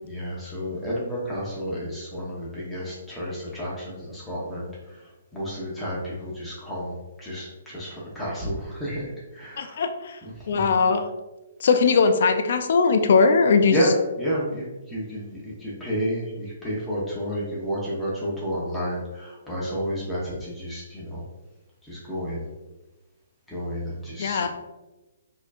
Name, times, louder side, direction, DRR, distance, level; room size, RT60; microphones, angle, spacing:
voice 1, 0.0-9.8 10.2-10.7 13.7-21.2 21.8-22.5 23.5-24.5, equal, 5° left, -7 dB, 0.8 m, -31 dB
voice 2, 9.6-10.2 10.5-11.0 11.6-13.8 24.2-24.5, left 5 dB, 60° left, 7 dB, 0.3 m, -20 dB
4.2 x 2.7 x 2.4 m, 1.1 s
hypercardioid pair, 145°, 0 cm